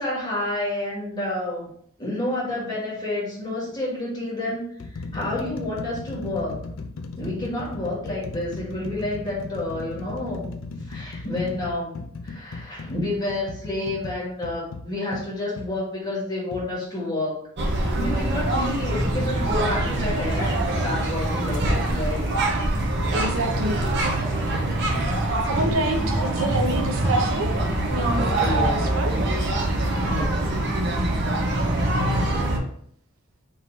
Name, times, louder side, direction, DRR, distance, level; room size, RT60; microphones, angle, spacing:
voice 1, 0.0-1.7 2.0-4.7 4.9-6.6 7.2-10.5 10.9-17.4 18.0-22.3 23.1-23.2 24.1-24.2 26.1-26.5 27.0-27.2 28.4-28.8 30.0-30.3, left 1 dB, 20° left, -7 dB, 1.9 m, -29 dB
sound 1, 2.5-2.7 3.6-3.8 4.4-15.7 16.5-16.7, left 3 dB, 70° left, 0.4 m, -37 dB
sound 2, 17.6-32.6, right 1 dB, 55° right, 0.9 m, -24 dB
voice 2, 23.1-23.8 25.5-27.5 27.9-29.1, right 2 dB, 80° right, 4 dB, 0.7 m, -27 dB
3.8 x 3.0 x 4.0 m, 0.63 s
head